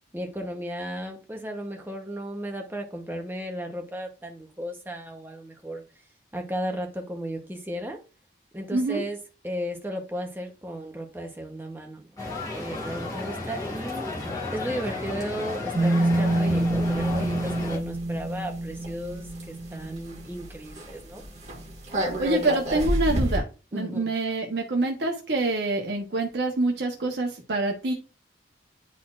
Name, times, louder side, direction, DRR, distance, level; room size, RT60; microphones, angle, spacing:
voice 1, 0.1-5.8 6.3-8.0 8.5-9.2 9.4-12.1 12.5-21.2 23.7-24.1, equal, 10° right, 3 dB, 0.9 m, -35 dB
sound 1, 12.2-17.8, left 2 dB, 20° left, 1.6 m, -33 dB
sound 2, 15.7-20.4 20.8-20.9 21.2-23.4, right 1 dB, 35° right, 1.8 m, -27 dB
voice 2, 22.2-23.4 23.7-27.9, right 2 dB, 65° right, 0 dB, 1.0 m, -26 dB
10.0 x 4.2 x 2.4 m, 0.33 s
head